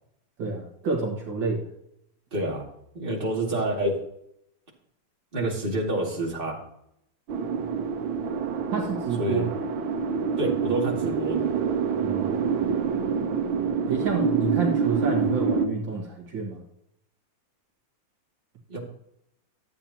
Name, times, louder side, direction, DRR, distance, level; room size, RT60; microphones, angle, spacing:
voice 1, 0.4-1.6 8.7-9.5 12.0-12.5 13.9-16.6, right 4 dB, 70° right, 0 dB, 2.2 m, -29 dB
voice 2, 2.3-2.6 2.9-4.0 5.3-6.6 9.2-9.5 10.4-11.5 18.7-18.8, right 1 dB, 25° right, -3 dB, 2.6 m, -28 dB
sound 1, 7.3-15.7, right 6 dB, 85° right, 1.7 m, -26 dB
13.0 x 8.4 x 2.9 m, 0.75 s
omnidirectional pair, 2.2 m